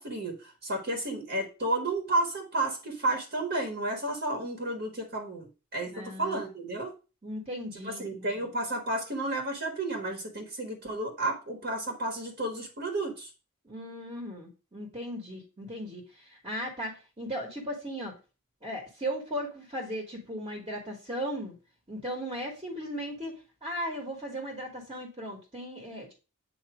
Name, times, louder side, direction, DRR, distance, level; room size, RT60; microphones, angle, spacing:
voice 1, 0.0-6.9 7.8-13.3, right 2 dB, 50° right, 2 dB, 1.3 m, -32 dB
voice 2, 5.9-6.4 7.2-8.4 13.6-18.1 18.6-21.5 21.9-26.1, equal, 25° right, 0 dB, 1.3 m, -37 dB
7.8 x 2.9 x 4.9 m, 0.32 s
head